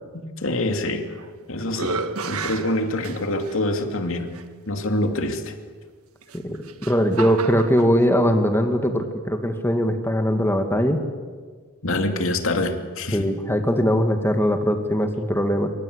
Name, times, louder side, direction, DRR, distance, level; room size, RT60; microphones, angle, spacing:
voice 1, 0.1-1.1 1.5-2.0 2.3-4.3 4.7-5.5 11.8-13.3, left 1 dB, 65° left, 5 dB, 2.8 m, -25 dB
sound 1, 0.9-1.3 1.7-3.6 4.3-4.4 6.2-7.9, right 4 dB, 80° right, 1.6 m, -32 dB
voice 2, 6.9-11.0 13.1-15.7, equal, 10° left, 5 dB, 2.1 m, -21 dB
28.0 x 24.5 x 8.2 m, 1.5 s
head